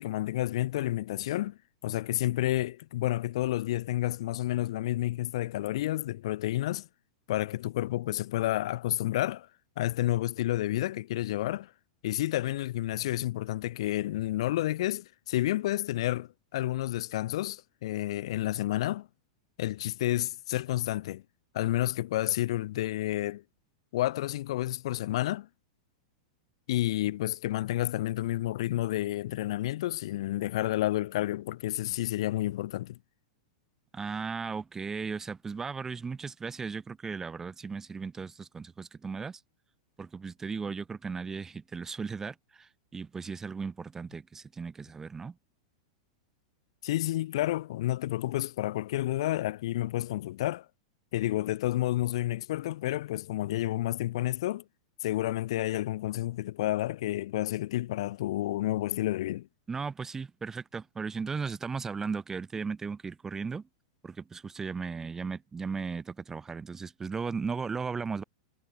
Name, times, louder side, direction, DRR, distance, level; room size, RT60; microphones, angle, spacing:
voice 1, 0.0-1.6 1.8-6.9 7.3-9.5 9.8-11.7 12.0-19.1 19.6-21.2 21.5-23.4 23.9-25.5 26.7-33.0 46.8-50.7 51.1-54.6 55.0-59.5, left 15 dB, 70° left, 1.7 m, -30 dB
voice 2, 33.9-39.4 40.0-45.4 59.7-63.7 64.0-68.2, right 5 dB, 15° right, 2.6 m, -36 dB
hypercardioid pair, 125°, 3 cm